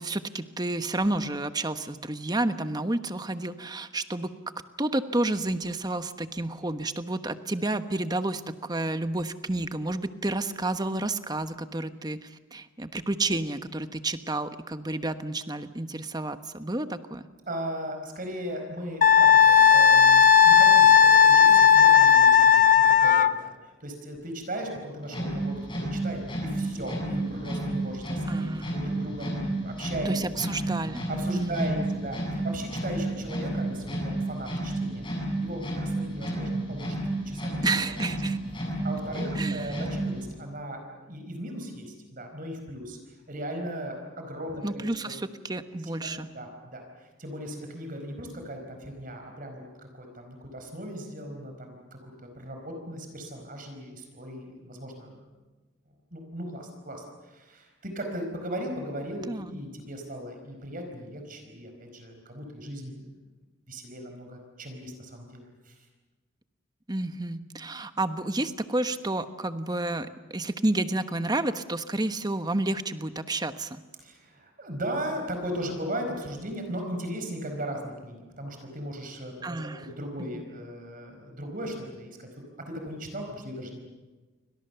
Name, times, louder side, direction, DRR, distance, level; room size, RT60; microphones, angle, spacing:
voice 1, 0.0-4.3 4.8-17.3 28.3-28.8 30.0-31.1 31.3-31.9 37.6-38.4 39.3-39.8 44.6-46.3 59.3-59.6 66.9-73.8 79.4-79.9 80.3-80.4, right 2 dB, 20° right, 10 dB, 1.1 m, -30 dB
voice 2, 17.5-30.1 31.1-37.0 37.3-37.6 37.9-38.0 38.8-45.1 45.9-55.3 56.1-63.1 63.7-65.8 74.0-82.3 82.7-83.8, right 1 dB, 45° right, 4 dB, 4.7 m, -37 dB
Wind instrument woodwind instrument, 19.0-23.3, left 8 dB, 40° left, 0.9 m, -16 dB
sound 1, 25.0-40.3, right 1 dB, 25° left, 7.7 m, -31 dB
30.0 x 24.5 x 6.9 m, 1.2 s
head